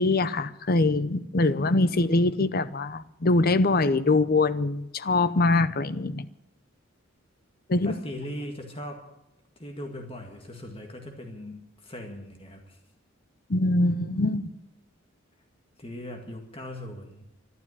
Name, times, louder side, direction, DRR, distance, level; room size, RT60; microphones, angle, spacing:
voice 1, 0.0-6.3 7.7-8.0 13.5-14.5, left 2 dB, 45° left, 0.7 m, -23 dB
voice 2, 7.8-9.1 9.6-12.8 15.8-17.2, left 1 dB, 30° left, 1.9 m, -39 dB
12.0 x 12.0 x 9.8 m
head